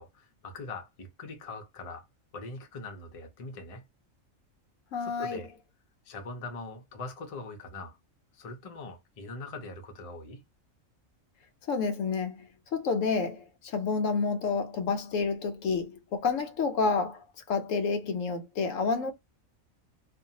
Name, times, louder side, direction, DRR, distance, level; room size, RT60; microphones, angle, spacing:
voice 1, 0.0-2.1 2.3-3.8 5.0-5.5 6.0-8.0 8.3-10.4, left 3 dB, 40° left, 0.5 m, -42 dB
voice 2, 4.9-5.4 11.7-19.1, left 4 dB, 75° left, 0.9 m, -29 dB
2.5 x 2.2 x 2.7 m
omnidirectional pair, 1.4 m